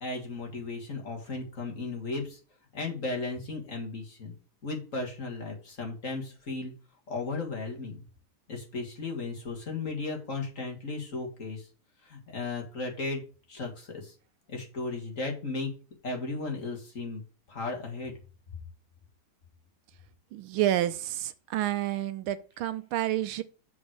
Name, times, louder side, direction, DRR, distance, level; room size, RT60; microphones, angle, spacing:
voice 1, 0.0-2.4 2.7-4.3 4.6-6.7 7.1-8.0 8.5-11.7 12.0-13.2 13.5-14.1 14.5-15.7 16.0-17.2 17.5-18.1, left 3 dB, 40° left, 2.0 m, -35 dB
voice 2, 20.3-23.4, right 13 dB, 80° right, 1.4 m, -29 dB
7.2 x 4.7 x 6.2 m
omnidirectional pair, 2.3 m